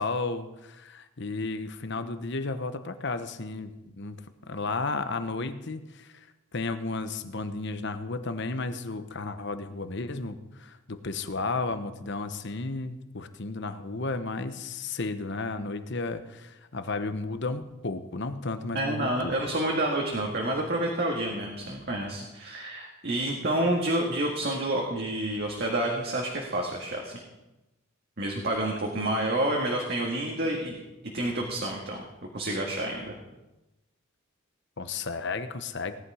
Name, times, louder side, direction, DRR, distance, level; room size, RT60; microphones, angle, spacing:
voice 1, 0.0-3.7 4.0-6.3 6.5-19.3 34.8-36.0, left 3 dB, 55° left, 10 dB, 1.0 m, -33 dB
voice 2, 18.7-27.2 28.2-30.8 31.1-32.0 32.3-33.1, right 1 dB, 50° right, -1 dB, 1.9 m, -29 dB
18.0 x 11.0 x 4.9 m, 1.0 s
head